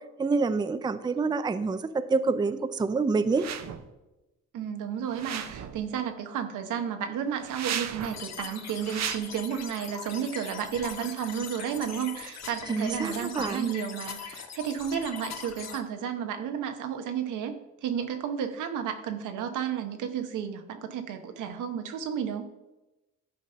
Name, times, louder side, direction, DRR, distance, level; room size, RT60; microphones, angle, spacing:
voice 1, 0.2-3.5 12.7-13.7, right 4 dB, 15° right, 12 dB, 0.4 m, -27 dB
sound 1, 3.3-3.8 5.1-5.8 7.4-8.2 8.8-9.2, right 9 dB, 60° right, 0.7 m, -35 dB
voice 2, 4.5-22.5, right 8 dB, 85° right, 7 dB, 1.0 m, -32 dB
sound 2, 8.0-15.8, left 7 dB, 60° left, 1.2 m, -41 dB
11.5 x 4.1 x 5.5 m, 1.0 s
cardioid pair, 90°, 30 cm